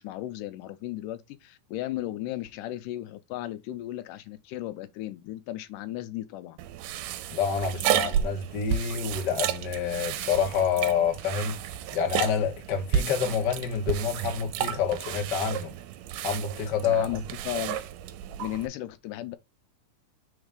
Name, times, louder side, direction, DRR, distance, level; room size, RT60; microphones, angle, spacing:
voice 1, 0.0-6.6 16.8-17.8 18.4-19.4, left 14 dB, 85° left, 2.2 m, -35 dB
sound 1, 6.6-18.7, right 10 dB, 85° right, 2.2 m, -32 dB
voice 2, 7.3-11.5 11.9-15.7 16.2-17.1, left 6 dB, 60° left, 1.1 m, -27 dB
4.7 x 4.0 x 5.0 m
omnidirectional pair, 3.7 m